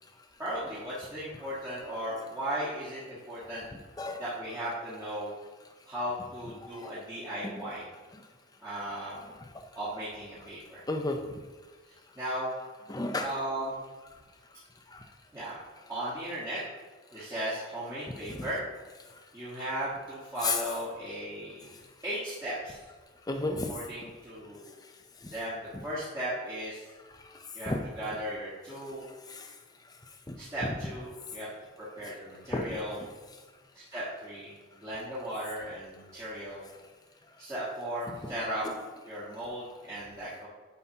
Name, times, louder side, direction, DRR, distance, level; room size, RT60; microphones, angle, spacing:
voice 1, 0.4-3.6 4.2-5.3 5.9-7.9 8.6-9.2 9.7-10.8 12.1-12.5 13.2-13.8 15.3-15.6 15.9-16.6 17.1-18.6 19.3-21.8 22.0-22.8 23.4-24.7 25.3-26.9 27.5-29.1 30.4-31.5 31.8-33.0 33.7-36.7 37.4-38.6 39.1-40.5, right 1 dB, 15° right, -11 dB, 1.4 m, -36 dB
voice 2, 6.6-6.9 7.4-7.5 8.1-8.2 9.4-9.7 10.9-11.4 12.9-13.3 14.1-14.2 14.5-15.1 17.1-17.3 18.3-18.5 19.1-19.3 20.4-20.6 21.6-21.9 23.2-23.8 24.5-25.3 27.1-27.8 29.0-30.4 31.2-31.4 32.0-32.1 32.5-32.7 34.7-34.8 37.3-37.4 38.1-38.2 38.6-38.7, left 2 dB, 15° left, 5 dB, 0.6 m, -36 dB
9.2 x 5.8 x 2.9 m, 1.3 s
head